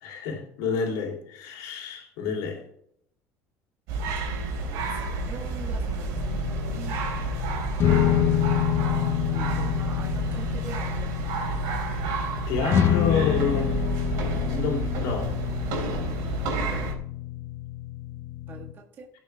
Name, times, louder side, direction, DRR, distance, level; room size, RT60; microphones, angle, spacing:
voice 1, 0.0-2.6 12.5-13.7 14.4-15.4, left 5 dB, 85° left, 3.1 m, -29 dB
sound 1, 3.9-16.9, right 3 dB, 80° right, 3.5 m, -30 dB
voice 2, 4.5-7.2 8.7-11.1 16.2-16.9 18.5-19.1, right 4 dB, 35° right, 1.6 m, -44 dB
sound 2, 6.1-18.7, left 11 dB, 45° left, 0.9 m, -28 dB
18.5 x 6.3 x 3.5 m
cardioid pair, 145°, 6 cm